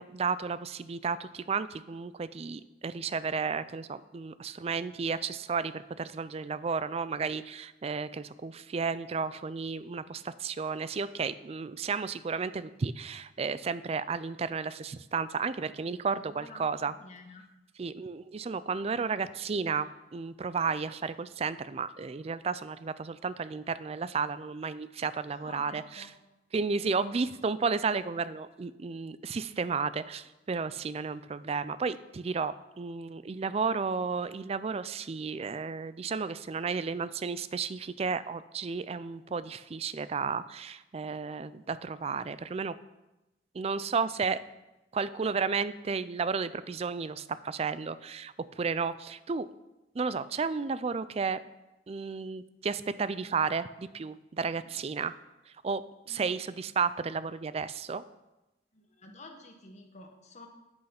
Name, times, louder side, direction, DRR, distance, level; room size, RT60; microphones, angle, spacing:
voice 1, 0.0-16.9 17.8-26.1 26.5-42.7 43.5-44.4 44.9-49.5 49.9-51.4 51.9-55.2 55.6-58.0, right 5 dB, 35° right, 15 dB, 0.4 m, -33 dB
voice 2, 16.1-17.4 25.3-26.1 54.6-54.7 56.1-56.3 58.7-60.5, left 2 dB, 40° left, 2 dB, 1.4 m, -50 dB
8.5 x 8.0 x 5.8 m, 0.99 s
head